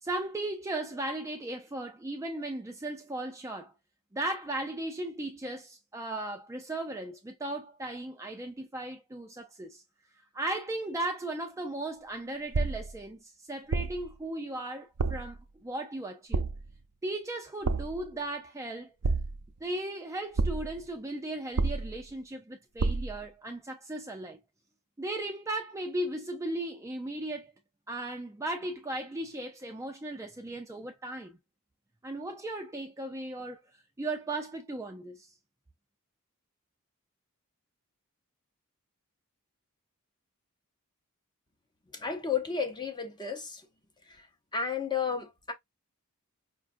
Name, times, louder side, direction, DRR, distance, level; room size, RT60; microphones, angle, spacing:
voice 1, 0.0-3.7 4.1-9.8 10.3-16.4 17.0-18.9 19.6-24.4 25.0-27.5 27.9-31.4 32.0-33.6 34.0-35.3, right 1 dB, 15° right, 0.4 m, -36 dB
sound 1, 12.5-13.0 13.7-14.1 15.0-15.4 16.3-16.8 17.6-18.1 19.0-19.6 20.4-20.8 21.6-22.1 22.8-23.2, right 3 dB, 90° right, 0.5 m, -29 dB
voice 2, 41.9-43.7 44.1-44.3 44.5-45.5, left 6 dB, 20° left, 0.7 m, -32 dB
5.1 x 2.4 x 2.5 m
head